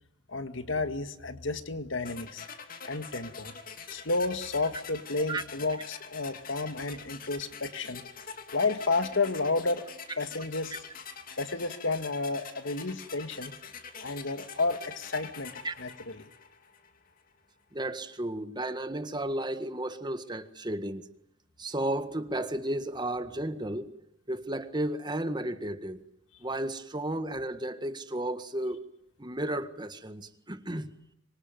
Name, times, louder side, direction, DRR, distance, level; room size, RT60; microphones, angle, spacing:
voice 1, 0.3-2.5 2.8-3.5 3.9-8.0 8.5-9.8 10.2-10.7 11.4-13.5 14.0-16.3, left 3 dB, 80° left, 2.0 m, -31 dB
sound 1, 2.0-17.0, left 6 dB, 50° left, 2.8 m, -45 dB
voice 2, 17.7-21.1 21.6-24.0 24.3-26.1 26.4-28.8 29.2-30.9, right 1 dB, 25° right, 1.7 m, -33 dB
26.0 x 24.0 x 9.3 m
head